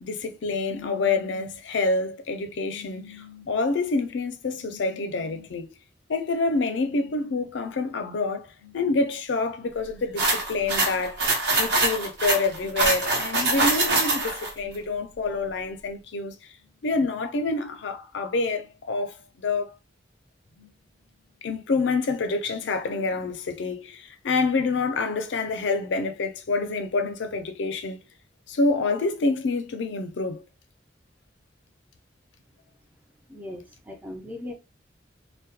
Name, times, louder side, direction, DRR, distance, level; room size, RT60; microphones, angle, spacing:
voice 1, 0.0-5.7 6.1-11.2 11.5-16.4 16.8-19.7 20.6-20.7 21.4-28.0 28.5-30.4, left 3 dB, 75° left, 0.4 m, -27 dB
sound 1, 10.2-14.5, right 2 dB, 65° right, 0.8 m, -24 dB
voice 2, 33.3-34.5, left 1 dB, 10° right, 0.4 m, -38 dB
2.2 x 2.1 x 2.8 m
head